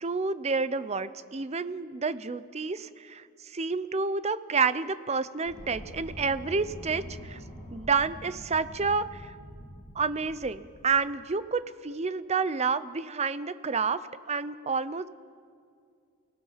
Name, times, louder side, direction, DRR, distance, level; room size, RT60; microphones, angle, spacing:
voice 1, 0.0-7.4 7.7-9.3 10.0-14.0 14.3-15.1, right 4 dB, 30° right, 14 dB, 0.6 m, -29 dB
sound 1, 5.4-11.3, equal, 30° left, 4.5 m, -45 dB
28.5 x 18.0 x 5.7 m, 2.2 s
head